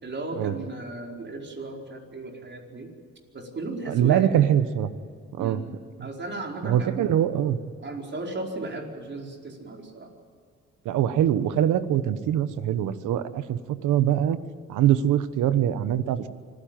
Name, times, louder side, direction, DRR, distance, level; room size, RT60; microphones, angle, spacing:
voice 1, 0.0-2.9 3.3-4.5 5.4-5.6 6.0-7.1 7.8-10.1, right 2 dB, 35° right, 2 dB, 4.8 m, -35 dB
voice 2, 3.9-4.9 5.3-5.6 6.6-7.6 10.8-14.4 14.7-16.3, right 10 dB, 90° right, 13 dB, 1.3 m, -23 dB
25.5 x 15.5 x 9.1 m, 2.2 s
cardioid pair, 90°, 30 cm